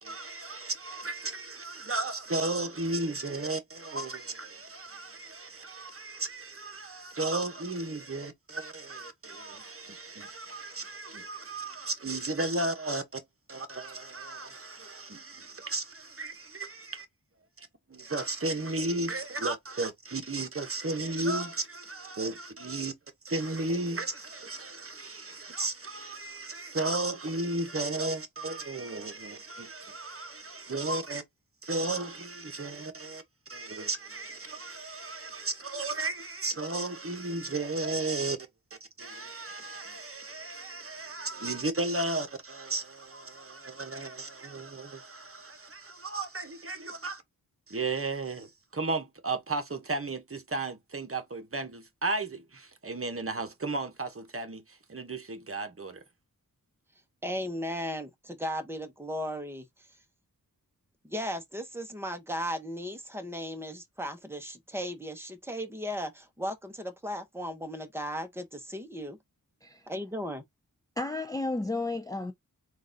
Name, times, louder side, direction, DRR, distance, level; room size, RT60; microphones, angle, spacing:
voice 1, 0.0-13.2 13.5-17.1 17.6-22.9 23.2-31.2 31.6-33.2 33.5-38.4 39.0-47.2 47.7-54.6 54.9-56.0, right 2 dB, 40° right, 1.1 m, -34 dB
voice 2, 57.2-59.7 61.0-69.2 69.9-70.4, equal, 5° right, 1.0 m, -36 dB
voice 3, 71.0-72.3, left 2 dB, 10° left, 0.4 m, -32 dB
3.9 x 2.5 x 3.9 m
wide cardioid pair, 80°, 35 cm